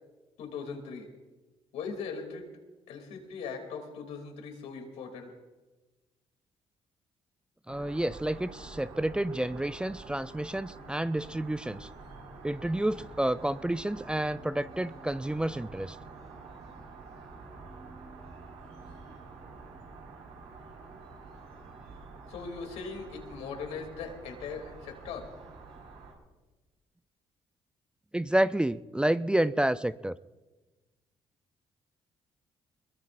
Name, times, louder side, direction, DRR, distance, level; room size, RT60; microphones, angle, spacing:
voice 1, 0.4-1.1 1.7-2.5 2.9-5.3 22.3-25.3, left 5 dB, 80° left, 3 dB, 2.9 m, -39 dB
voice 2, 7.7-11.9 12.4-16.0 28.1-30.2, right 1 dB, 10° right, 13 dB, 0.5 m, -29 dB
sound 1, 7.7-26.1, right 3 dB, 80° right, 5.1 m, -48 dB
22.0 x 21.5 x 2.6 m, 1.2 s
supercardioid pair, 70°, 11 cm